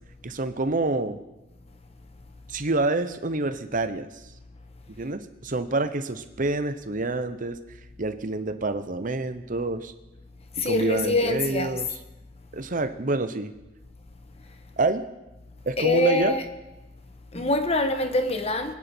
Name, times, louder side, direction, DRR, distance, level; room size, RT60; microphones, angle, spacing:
voice 1, 0.2-1.2 2.5-4.2 4.9-7.6 8.0-9.9 10.6-11.9 12.5-13.5 14.8-15.0 15.6-16.4, right 2 dB, 45° right, 0.9 m, -27 dB
voice 2, 10.5-11.8 15.8-16.4 17.3-18.7, left 2 dB, 35° left, 1.3 m, -24 dB
22.5 x 10.0 x 4.5 m
head